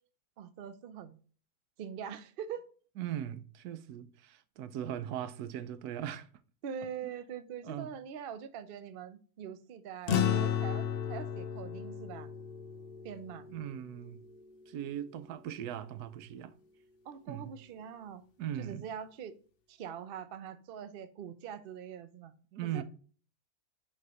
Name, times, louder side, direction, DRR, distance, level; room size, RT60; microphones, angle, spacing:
voice 1, 0.4-1.2 1.8-2.7 6.6-12.3 13.0-13.5 17.0-18.2 18.6-19.3 19.7-22.3 22.6-22.8, right 8 dB, 65° right, 0.5 m, -43 dB
voice 2, 3.0-6.3 7.6-7.9 13.5-14.2 14.7-16.6 17.3-17.5 18.4-18.9 22.5-22.8, right 10 dB, 80° right, 1.1 m, -39 dB
sound 1, 10.1-14.7, left 9 dB, 75° left, 0.5 m, -34 dB
6.7 x 3.2 x 4.9 m
omnidirectional pair, 1.6 m